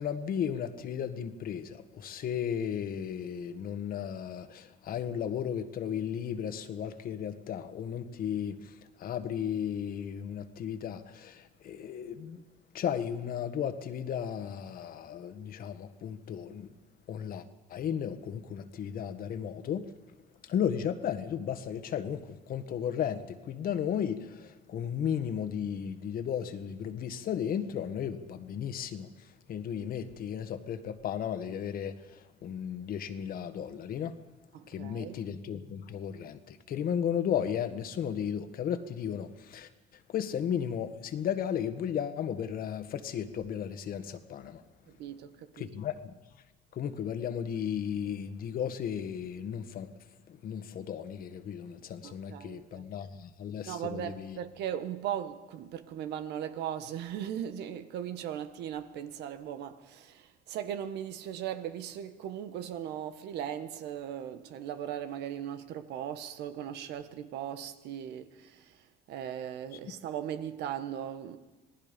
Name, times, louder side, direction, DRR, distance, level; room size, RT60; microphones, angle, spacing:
voice 1, 0.0-12.4 12.7-16.7 17.1-19.9 20.4-34.2 34.7-44.6 45.6-46.1 46.7-49.9 50.3-54.4, left 8 dB, 60° left, 1.6 m, -35 dB
voice 2, 34.5-35.2 44.9-45.7 52.0-52.6 53.6-71.4, right 10 dB, 80° right, 1.5 m, -38 dB
27.0 x 18.5 x 5.3 m
cardioid pair, 110°, 17 cm